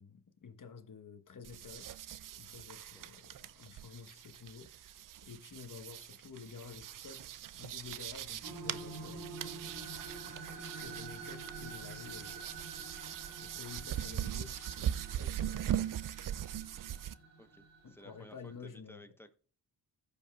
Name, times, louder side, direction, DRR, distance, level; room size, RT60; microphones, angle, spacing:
voice 1, 0.0-1.9 2.4-7.2 7.6-9.3 10.5-12.4 13.4-15.9 17.8-19.0, left 6 dB, 45° left, 1.3 m, -51 dB
sound 1, 1.4-17.2, right 11 dB, 50° right, 0.5 m, -41 dB
sound 2, 8.4-18.6, right 3 dB, 80° right, 1.5 m, -48 dB
voice 2, 17.4-19.4, left 1 dB, 5° left, 1.0 m, -57 dB
16.0 x 5.3 x 2.3 m
supercardioid pair, 45°, 43 cm